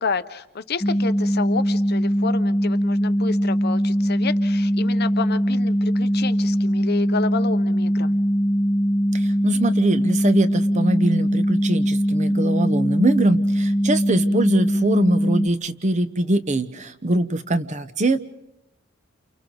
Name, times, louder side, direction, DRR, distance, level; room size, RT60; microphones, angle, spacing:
voice 1, 0.0-8.2, left 4 dB, 50° left, 11 dB, 0.9 m, -30 dB
sound 1, 0.8-15.5, equal, 10° left, 0.9 m, -21 dB
voice 2, 9.1-18.2, right 1 dB, 35° right, 11 dB, 0.9 m, -23 dB
30.0 x 28.5 x 3.9 m, 0.90 s
head